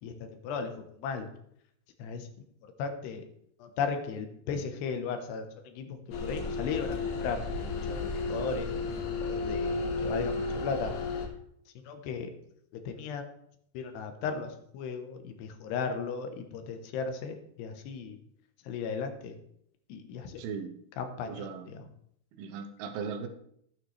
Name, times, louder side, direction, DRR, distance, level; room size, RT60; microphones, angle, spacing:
voice 1, 1.0-1.3 2.0-2.3 2.8-3.2 3.6-7.4 7.9-8.7 9.2-10.9 11.9-12.3 12.7-13.2 13.7-18.2 18.7-19.4 19.9-20.4 21.0-21.8, left 5 dB, 85° left, 7 dB, 3.1 m, -36 dB
sound 1, 6.1-11.3, left 3 dB, 70° left, 2.5 m, -33 dB
voice 2, 20.4-20.8 21.2-21.7 22.3-23.3, right 6 dB, 75° right, 7 dB, 2.6 m, -38 dB
12.0 x 8.9 x 3.2 m, 0.71 s
omnidirectional pair, 4.8 m